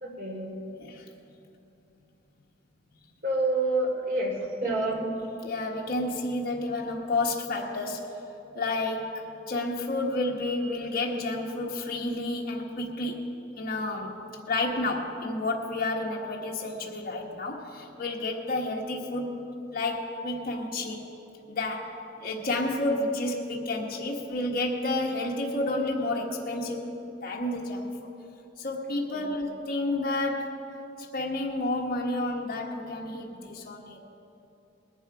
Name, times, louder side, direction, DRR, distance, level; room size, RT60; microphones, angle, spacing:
voice 1, 0.0-0.5 3.2-5.3 29.1-29.2, right 2 dB, 55° right, -1 dB, 2.8 m, -28 dB
voice 2, 4.6-8.2 8.5-9.2 9.5-13.2 13.6-14.1 14.5-19.4 19.7-21.0 21.5-26.8 27.2-27.9 28.6-30.6 31.0-34.0, left 2 dB, 50° left, -2 dB, 1.4 m, -30 dB
19.5 x 11.0 x 4.8 m, 2.8 s
head